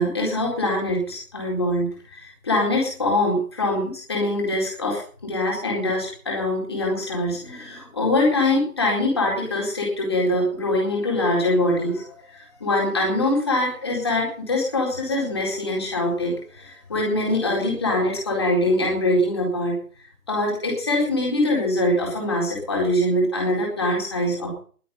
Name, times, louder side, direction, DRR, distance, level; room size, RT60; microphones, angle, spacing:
voice 1, 0.0-19.7 20.3-24.6, left 1 dB, 15° left, -2 dB, 4.4 m, -23 dB
21.0 x 8.4 x 5.6 m, 0.43 s
figure-of-eight pair, 170°, 46 cm